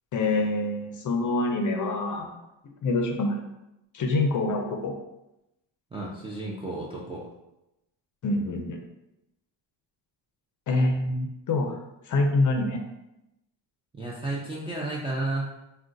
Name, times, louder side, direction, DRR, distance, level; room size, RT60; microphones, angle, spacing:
voice 1, 0.1-2.3 2.8-3.4 3.9-4.9 8.2-8.8 10.7-11.8 12.1-12.8, left 2 dB, 45° left, 3 dB, 0.5 m, -26 dB
voice 2, 5.9-7.3 13.9-15.6, right 2 dB, 15° right, -5 dB, 0.3 m, -32 dB
2.4 x 2.2 x 3.8 m, 0.91 s
cardioid pair, 125°, 46 cm